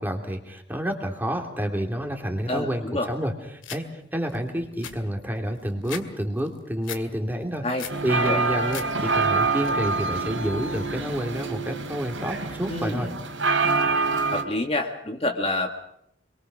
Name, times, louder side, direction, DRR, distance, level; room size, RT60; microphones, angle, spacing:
voice 1, 0.0-13.1, equal, 10° right, 3 dB, 3.1 m, -29 dB
sound 1, 3.6-3.8 4.3-4.4 4.6-6.1 6.4-7.0 7.4-8.0 8.4-8.9 9.2-9.7, left 8 dB, 85° left, 2.2 m, -38 dB
sound 2, 7.9-14.4, right 3 dB, 80° right, 3.3 m, -26 dB
voice 2, 12.7-13.1 14.3-15.7, left 2 dB, 30° left, 3 dB, 1.7 m, -27 dB
27.0 x 23.0 x 6.3 m, 0.74 s
head